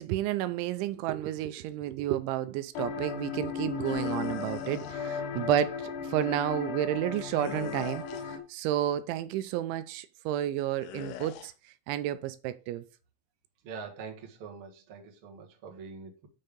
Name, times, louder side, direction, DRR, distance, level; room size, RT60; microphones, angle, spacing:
voice 1, 0.0-11.5 11.9-12.8, right 12 dB, 80° right, 2.8 m, -31 dB
sound 1, 2.7-8.4, left 6 dB, 60° left, 2.3 m, -36 dB
sound 2, 3.9-5.0 7.4-8.4 10.8-11.5, left 11 dB, 80° left, 2.3 m, -43 dB
voice 2, 13.6-16.3, right 5 dB, 65° right, 1.3 m, -44 dB
7.2 x 6.7 x 5.2 m
omnidirectional pair, 5.6 m